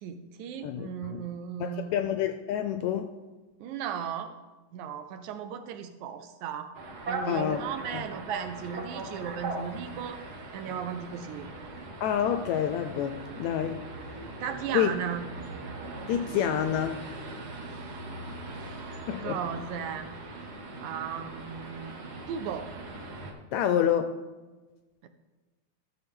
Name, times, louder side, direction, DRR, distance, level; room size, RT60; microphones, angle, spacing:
voice 1, 0.0-2.0 3.6-4.3 4.7-6.7 7.1-10.2 10.5-11.5 14.4-15.3 17.6-17.7 18.6-18.9 19.2-20.1 20.8-22.0 22.3-22.7 25.0-25.1, right 8 dB, 75° right, 8 dB, 2.0 m, -36 dB
voice 2, 0.6-1.3 1.6-3.1 7.3-7.6 7.9-8.0 12.0-13.8 14.7-14.9 16.1-17.1 19.1-19.4 23.5-24.1, left 9 dB, 80° left, 8 dB, 1.6 m, -28 dB
sound 1, 6.7-23.3, right 2 dB, 60° right, 1.0 m, -40 dB
13.5 x 6.8 x 3.6 m, 1.3 s
omnidirectional pair, 3.6 m